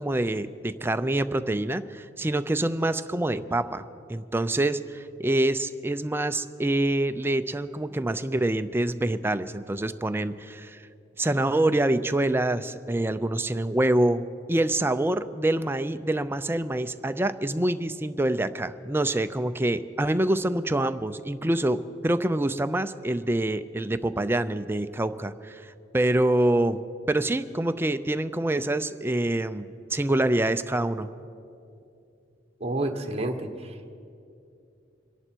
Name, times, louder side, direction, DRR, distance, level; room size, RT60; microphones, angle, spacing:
voice 1, 0.0-3.8 4.1-10.8 11.2-14.2 14.5-31.1, right 1 dB, 15° right, 10 dB, 0.5 m, -26 dB
voice 2, 32.6-33.9, right 2 dB, 35° right, 6 dB, 1.2 m, -30 dB
26.0 x 11.0 x 4.5 m, 2.6 s
head